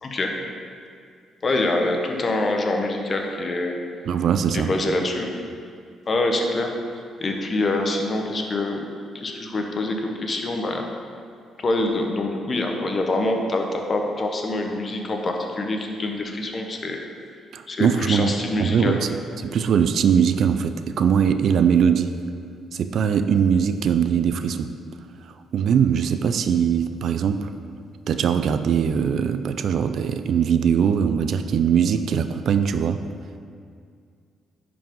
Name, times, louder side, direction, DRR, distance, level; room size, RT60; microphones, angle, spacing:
voice 1, 0.0-0.3 1.4-3.8 4.5-5.3 6.1-6.7 7.2-8.9 9.1-10.9 11.6-17.0 17.7-19.0, left 2 dB, 40° left, 3 dB, 1.0 m, -25 dB
voice 2, 4.1-4.7 17.5-18.3 18.6-22.2 22.7-24.7 25.5-27.5 28.1-33.0, right 7 dB, 65° right, 9 dB, 0.4 m, -21 dB
10.5 x 4.9 x 3.8 m, 2.2 s
cardioid pair, 90°, 0 cm